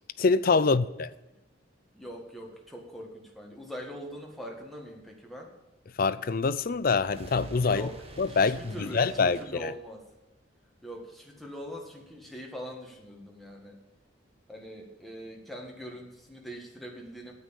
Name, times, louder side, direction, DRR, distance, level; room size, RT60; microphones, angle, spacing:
voice 1, 0.2-1.1 6.0-7.9 8.2-9.7, left 4 dB, 45° left, 0.5 m, -25 dB
voice 2, 1.9-5.5 7.7-10.0 10.8-13.8 14.5-17.3, equal, ahead, 1.8 m, -42 dB
sound 1, 6.6-10.2, right 1 dB, 30° right, 1.2 m, -48 dB
9.3 x 8.2 x 7.1 m
head